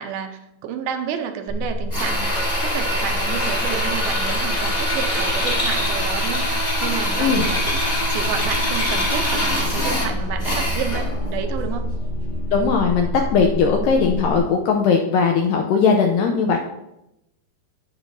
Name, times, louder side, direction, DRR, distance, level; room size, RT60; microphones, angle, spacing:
voice 1, 0.0-11.9, right 8 dB, 80° right, 6 dB, 2.5 m, -30 dB
sound 1, 1.5-14.4, equal, 5° right, 0.8 m, -27 dB
Drill, 1.9-11.2, left 1 dB, 35° left, 0.9 m, -24 dB
sound 2, 7.3-13.0, right 1 dB, 65° left, 2.5 m, -33 dB
voice 2, 12.5-16.6, left 5 dB, 90° left, 3 dB, 2.0 m, -19 dB
8.9 x 8.3 x 2.6 m, 0.88 s
omnidirectional pair, 4.5 m